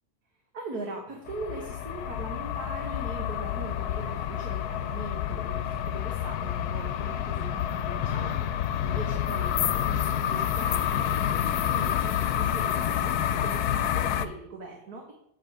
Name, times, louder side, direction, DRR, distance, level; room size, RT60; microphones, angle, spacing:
voice 1, 0.5-15.1, right 3 dB, 85° right, 1 dB, 1.9 m, -41 dB
sound 1, 1.3-14.3, left 10 dB, 85° left, 1.2 m, -28 dB
8.2 x 7.6 x 4.9 m, 0.76 s
omnidirectional pair, 1.6 m